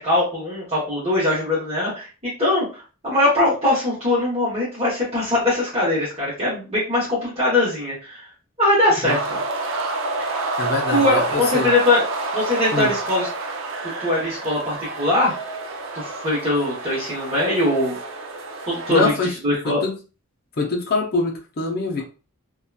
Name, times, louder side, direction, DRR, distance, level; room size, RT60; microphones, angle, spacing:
voice 1, 0.0-8.3 8.6-9.4 10.2-10.4 10.9-12.0 12.3-13.3 13.8-15.3 15.9-18.0 18.7-19.1 19.4-19.8, left 2 dB, 30° right, -8 dB, 1.0 m, -21 dB
sound 1, 9.1-19.1, right 3 dB, 60° right, 0.5 m, -28 dB
voice 2, 10.6-11.7 12.7-12.9 18.9-19.4 19.6-20.0 20.6-22.0, left 3 dB, 45° left, -1 dB, 0.6 m, -24 dB
2.8 x 2.2 x 2.3 m, 0.34 s
head